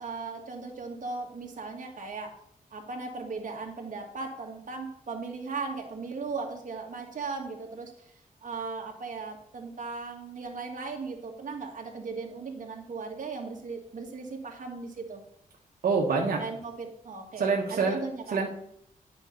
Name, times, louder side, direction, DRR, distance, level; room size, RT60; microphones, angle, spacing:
voice 1, 0.0-2.3 2.7-8.1 8.4-15.2 16.4-18.4, right 4 dB, 60° right, 1 dB, 1.9 m, -37 dB
voice 2, 15.8-16.4 17.4-18.0 18.3-18.5, right 4 dB, 85° right, -1 dB, 1.2 m, -26 dB
9.1 x 5.4 x 5.3 m, 0.71 s
wide cardioid pair, 100°, 15 cm